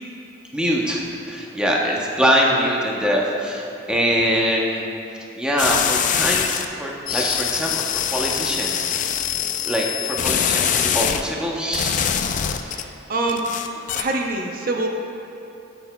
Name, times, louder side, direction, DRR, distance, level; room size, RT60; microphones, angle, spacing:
voice 1, 0.5-4.8 5.4-9.1 9.7-12.0, equal, 5° right, -3 dB, 0.8 m, -23 dB
sound 1, 5.6-6.6 7.1-11.2 11.7-12.8 13.3-14.0, left 8 dB, 40° left, 0.4 m, -23 dB
voice 2, 12.6-13.4 13.9-14.9, right 2 dB, 50° right, 1 dB, 0.6 m, -25 dB
13.0 x 8.0 x 2.2 m, 2.8 s
head